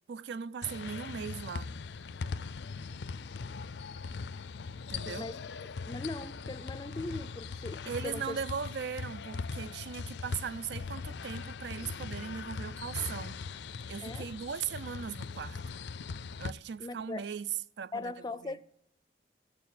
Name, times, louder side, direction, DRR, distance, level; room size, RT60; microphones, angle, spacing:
voice 1, 0.1-1.7 4.9-5.3 7.9-13.4 13.9-15.6 16.4-17.5 17.8-18.1 18.4-18.6, right 7 dB, 75° right, 0.4 m, -38 dB
sound 1, 0.6-16.5, left 4 dB, 80° left, 0.5 m, -40 dB
voice 2, 5.1-8.4 14.0-14.3 16.8-17.3 17.9-18.8, left 2 dB, 25° left, 0.4 m, -40 dB
16.0 x 6.9 x 9.2 m
head